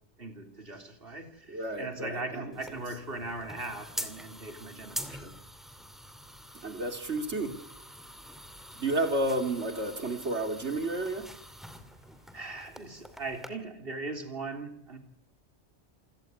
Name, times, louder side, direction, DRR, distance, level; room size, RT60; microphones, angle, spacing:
voice 1, 0.2-5.3 12.3-15.0, right 2 dB, 55° right, 3.7 m, -39 dB
voice 2, 1.5-2.2 6.6-7.5 8.8-11.3, right 2 dB, 90° right, 3.2 m, -31 dB
sound 1, 2.5-13.5, equal, ahead, 2.5 m, -45 dB
28.0 x 17.0 x 9.6 m
omnidirectional pair, 1.1 m